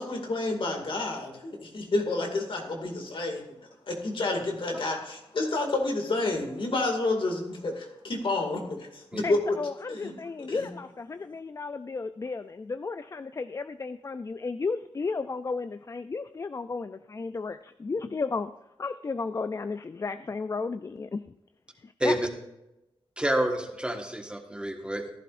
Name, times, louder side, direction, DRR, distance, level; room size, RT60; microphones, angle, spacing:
voice 1, 0.0-3.4 3.9-9.5 9.9-10.1 10.5-10.7, left 2 dB, 65° left, 2 dB, 2.2 m, -29 dB
voice 2, 9.2-18.5 18.8-21.3 21.8-22.2, left 4 dB, 35° left, 12 dB, 0.3 m, -33 dB
voice 3, 23.2-25.0, right 1 dB, 10° right, 3 dB, 1.5 m, -28 dB
14.5 x 11.5 x 2.6 m, 0.93 s
wide cardioid pair, 90°, 9 cm